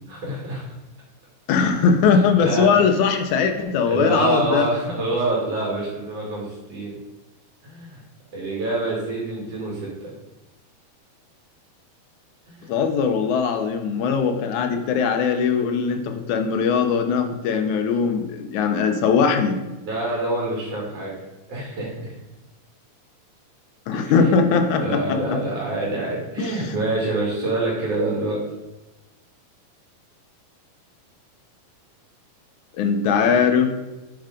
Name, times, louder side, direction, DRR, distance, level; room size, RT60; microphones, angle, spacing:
voice 1, 0.1-0.6 2.4-2.7 3.9-6.9 7.6-8.0 8.3-9.9 12.5-12.7 19.8-21.1 21.5-22.1 23.9-24.3 24.8-28.4, right 2 dB, 50° right, -5 dB, 2.9 m, -26 dB
voice 2, 1.5-4.7 12.7-19.6 23.9-25.2 26.4-26.7 32.8-33.7, left 6 dB, 70° left, 5 dB, 2.0 m, -20 dB
9.1 x 4.7 x 5.1 m, 1.1 s
omnidirectional pair, 4.0 m